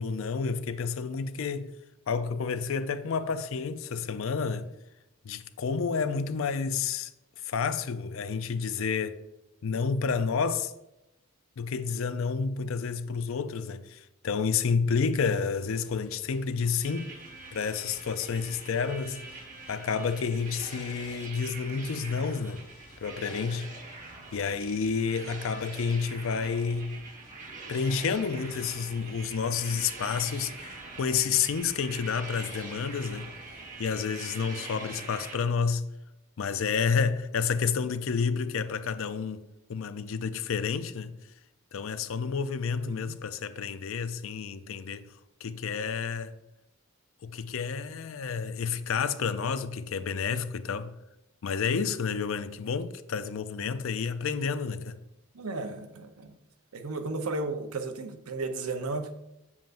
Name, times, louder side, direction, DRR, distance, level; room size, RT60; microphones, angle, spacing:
voice 1, 0.0-1.7 2.1-4.7 5.2-7.1 7.4-9.2 9.6-10.7 11.6-17.1 17.5-19.2 19.7-22.6 23.0-23.7 24.3-27.0 27.7-33.3 33.8-35.9 36.4-41.2 41.7-45.1 45.4-46.4 47.2-50.9 51.4-55.0, left 5 dB, 65° left, 0.4 m, -30 dB
sound 1, 15.2-33.9, left 1 dB, 40° left, 2.3 m, -57 dB
sound 2, 16.8-35.4, right 3 dB, 35° right, 1.1 m, -44 dB
voice 2, 42.8-43.2 55.3-56.3 56.7-59.1, right 3 dB, 90° right, 0.7 m, -34 dB
7.6 x 7.2 x 2.5 m
head